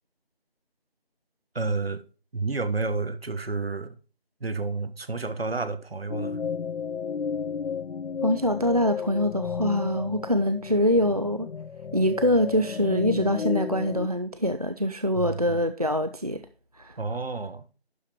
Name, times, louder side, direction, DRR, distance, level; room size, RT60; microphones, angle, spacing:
voice 1, 1.5-2.0 2.3-4.0 4.4-6.4 15.2-15.6 17.0-17.6, right 3 dB, 70° right, 1.2 m, -30 dB
sound 1, 6.1-14.1, left 6 dB, 80° left, 0.5 m, -33 dB
voice 2, 8.2-11.5 11.9-16.4 16.8-16.9, equal, 40° right, 0.4 m, -24 dB
11.5 x 4.7 x 5.0 m
figure-of-eight pair, 170°, 31 cm